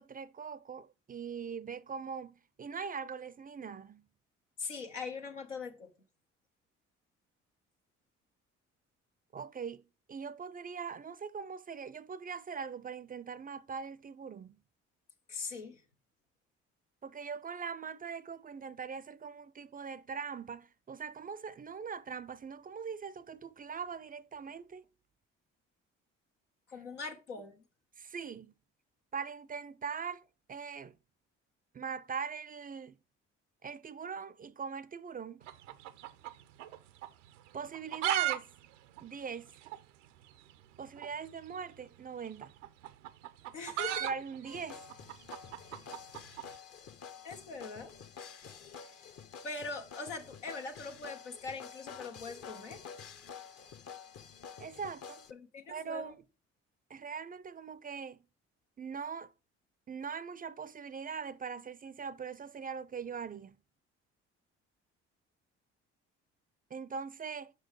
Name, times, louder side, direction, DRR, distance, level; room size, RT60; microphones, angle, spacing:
voice 1, 0.0-4.0 9.3-9.8 10.1-14.6 17.0-24.8 28.0-28.5 29.1-30.9 31.7-33.0 33.6-35.4 37.5-38.5 39.0-39.5 40.8-42.5 44.0-44.8 54.6-55.3 55.7-56.2 56.9-58.2 58.8-59.3 59.9-63.6 66.7-67.5, right 6 dB, 25° right, 0.4 m, -41 dB
voice 2, 4.6-5.9 15.3-15.8 26.7-27.6 43.5-44.1 47.2-47.9 48.4-48.5 49.4-52.8 55.3-56.1, left 4 dB, 85° left, 0.9 m, -42 dB
sound 1, 35.4-36.8 37.0-37.1 37.6-38.4 38.6-38.7 39.0-39.1 39.7-39.8 40.9-41.1 42.3-46.5, right 14 dB, 80° right, 0.5 m, -35 dB
sound 2, 44.5-55.3, left 6 dB, 45° left, 0.8 m, -49 dB
5.6 x 5.4 x 4.6 m
hypercardioid pair, 45°, 36 cm